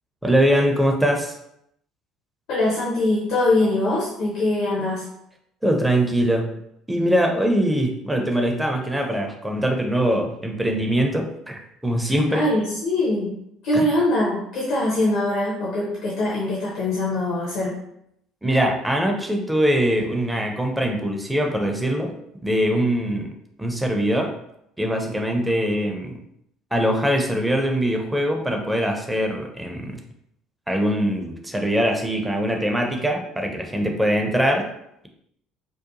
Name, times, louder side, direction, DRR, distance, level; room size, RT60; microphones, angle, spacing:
voice 1, 0.2-1.4 5.6-6.5 6.9-12.5 13.7-13.9 18.4-22.1 22.4-23.3 23.6-24.3 24.8-26.2 26.7-30.0 30.7-34.7, equal, 10° right, 2 dB, 0.5 m, -22 dB
voice 2, 2.5-5.1 12.3-13.4 13.6-17.8, left 1 dB, 60° left, -6 dB, 0.7 m, -22 dB
2.8 x 2.2 x 2.5 m, 0.77 s
figure-of-eight pair, 55°, 0 cm